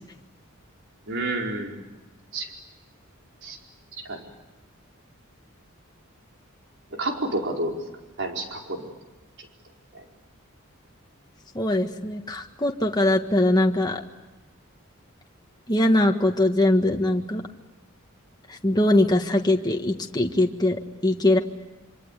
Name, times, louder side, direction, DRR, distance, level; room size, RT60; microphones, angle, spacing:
voice 1, 1.1-1.8 2.3-2.5 3.4-3.6 4.1-4.2 7.0-7.8 8.2-8.8, right 2 dB, 60° right, 1 dB, 4.8 m, -29 dB
voice 2, 11.5-14.0 15.7-17.4 18.5-21.4, left 1 dB, 20° left, 3 dB, 1.7 m, -22 dB
26.5 x 26.0 x 8.4 m, 1.1 s
head